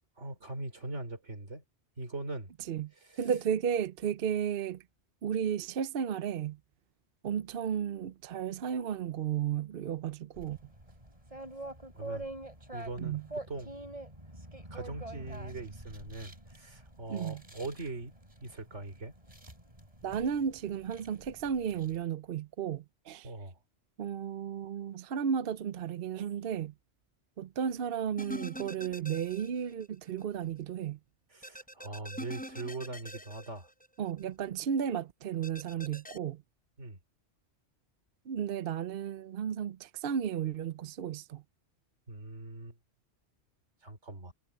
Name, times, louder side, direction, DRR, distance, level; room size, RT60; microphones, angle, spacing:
voice 1, 0.2-1.6 2.0-2.5 3.0-3.2 11.9-12.3 12.7-13.7 14.7-18.1 18.4-19.1 23.2-23.6 31.3-33.7 36.8-37.0 42.1-42.8 43.8-44.3, right 2 dB, 90° right, 3.7 m, -41 dB
voice 2, 3.2-4.8 5.2-6.6 7.2-10.6 13.0-13.3 17.1-17.4 20.0-23.3 24.0-26.7 27.4-31.0 34.0-36.4 38.3-41.4, right 8 dB, 60° right, 0.8 m, -33 dB
sound 1, 10.3-22.0, right 2 dB, 30° right, 7.5 m, -46 dB
sound 2, 28.2-29.9 30.2-30.3 31.4-34.2 35.4-36.2, equal, 5° left, 5.2 m, -44 dB
omnidirectional pair, 1.2 m